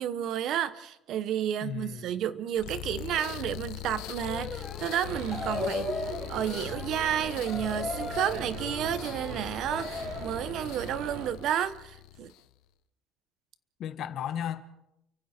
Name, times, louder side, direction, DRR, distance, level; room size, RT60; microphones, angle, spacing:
voice 1, 0.0-12.3, right 10 dB, 50° right, 1.1 m, -31 dB
voice 2, 1.6-2.2 13.8-14.6, left 9 dB, 45° left, 1.3 m, -35 dB
sound 1, 2.5-12.5, left 15 dB, 75° left, 0.8 m, -42 dB
sound 2, 4.2-10.4, left 3 dB, 15° left, 3.9 m, -37 dB
sound 3, 5.0-11.3, right 5 dB, 85° right, 4.1 m, -41 dB
30.0 x 24.5 x 4.5 m
cardioid pair, 170°, 0 cm